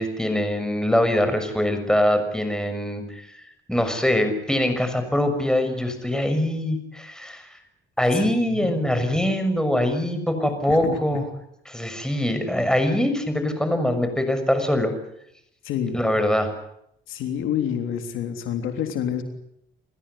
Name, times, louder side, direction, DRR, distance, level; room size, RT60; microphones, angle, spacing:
voice 1, 0.0-3.4 3.7-7.6 8.0-11.2 11.6-14.9 15.9-16.5, left 1 dB, 5° left, 8 dB, 6.4 m, -23 dB
voice 2, 8.1-8.7 10.7-11.0 15.6-16.0 17.1-19.2, left 9 dB, 90° left, 6 dB, 3.4 m, -28 dB
29.5 x 15.5 x 9.9 m, 0.77 s
cardioid pair, 90°, 20 cm